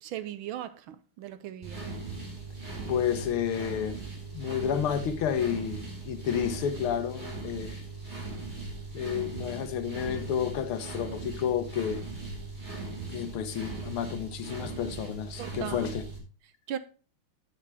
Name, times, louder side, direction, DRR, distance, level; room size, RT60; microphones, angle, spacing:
voice 1, 0.0-1.8 15.4-15.9 16.7-16.8, right 11 dB, 75° right, 1.4 m, -38 dB
sound 1, 1.6-16.2, right 3 dB, 20° right, 2.5 m, -39 dB
voice 2, 2.9-4.0 4.3-7.8 8.9-12.0 13.1-16.0, left 8 dB, 80° left, 1.8 m, -31 dB
10.5 x 7.3 x 3.3 m
omnidirectional pair, 2.4 m